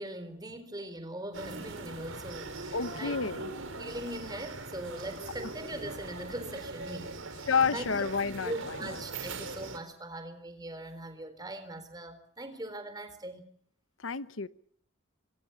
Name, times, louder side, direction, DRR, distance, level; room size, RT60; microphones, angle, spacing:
voice 1, 0.0-3.2 3.8-8.0 8.4-13.5, right 1 dB, 20° right, 10 dB, 4.0 m, -41 dB
sound 1, 1.3-9.8, right 3 dB, 90° right, 4.5 m, -41 dB
voice 2, 2.7-3.5 7.5-9.0 14.0-14.5, left 5 dB, 80° left, 14 dB, 1.0 m, -30 dB
27.0 x 25.5 x 5.8 m, 0.63 s
head